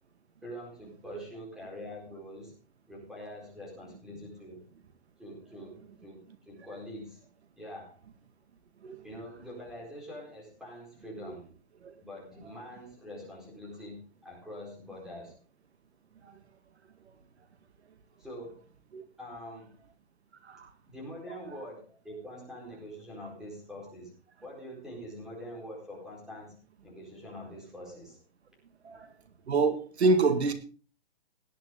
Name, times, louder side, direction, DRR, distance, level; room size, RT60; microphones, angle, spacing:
voice 1, 0.4-2.5 2.9-4.6 5.2-7.2 7.6-8.0 9.0-11.5 12.0-15.3 18.2-18.7 19.2-19.8 20.9-24.1 24.4-28.2, equal, ahead, 4.5 m, -44 dB
voice 2, 29.5-30.5, right 3 dB, 85° right, 2.0 m, -26 dB
17.5 x 10.5 x 3.8 m
hypercardioid pair, 165°, 32 cm